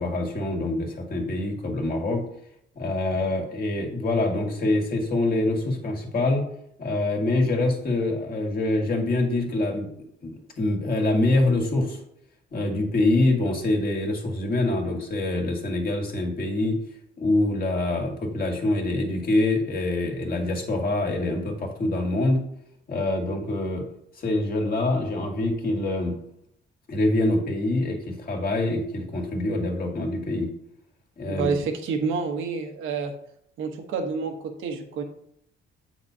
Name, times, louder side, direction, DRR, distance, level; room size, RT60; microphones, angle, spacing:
voice 1, 0.0-2.3 2.8-6.4 6.8-9.9 10.2-12.0 12.5-16.8 17.2-22.4 22.9-23.8 24.2-26.2 26.9-30.5 31.2-31.5, left 2 dB, 45° left, 1 dB, 1.8 m, -25 dB
voice 2, 31.3-33.1 33.6-35.0, right 5 dB, 90° right, 4 dB, 1.1 m, -28 dB
8.1 x 5.8 x 2.8 m, 0.73 s
cardioid pair, 90°, 20 cm